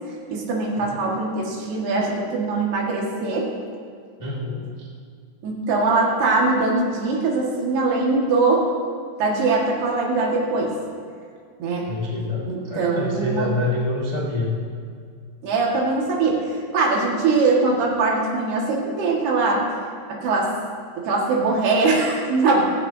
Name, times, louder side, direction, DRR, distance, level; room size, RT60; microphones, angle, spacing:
voice 1, 0.3-3.5 5.4-8.7 9.2-10.8 11.6-11.9 12.4-13.5 15.4-19.7 20.1-20.5 21.0-22.7, right 3 dB, 85° right, -2 dB, 4.0 m, -22 dB
voice 2, 4.2-4.9 11.9-14.6, left 2 dB, 65° left, -5 dB, 0.4 m, -26 dB
16.0 x 15.5 x 2.8 m, 2.2 s
omnidirectional pair, 4.5 m